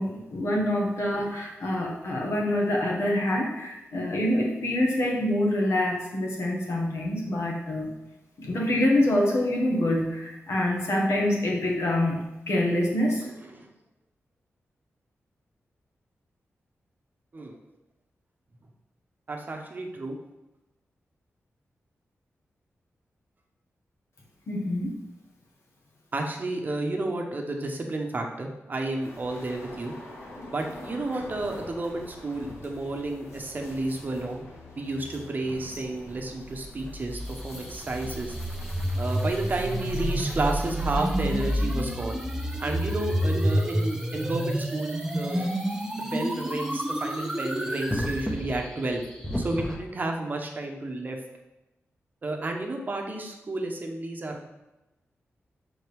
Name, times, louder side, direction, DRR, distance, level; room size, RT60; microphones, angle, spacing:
voice 1, 0.0-7.9 8.4-12.2 12.5-13.3 24.5-24.9, left 1 dB, 70° left, -1 dB, 1.5 m, -26 dB
voice 2, 19.3-20.2 26.1-29.9 30.5-34.4 34.8-38.4 39.0-42.2 42.6-45.5 46.0-49.0 49.4-51.2 52.2-54.5, right 2 dB, 40° right, 2 dB, 0.9 m, -31 dB
sound 1, 29.0-41.6, left 1 dB, 90° left, 1.5 m, -46 dB
sound 2, 36.1-48.3, equal, 10° right, 0.6 m, -29 dB
sound 3, 37.1-49.8, left 1 dB, 10° left, 0.9 m, -40 dB
6.2 x 4.7 x 3.4 m, 0.99 s
wide cardioid pair, 120°, 5 cm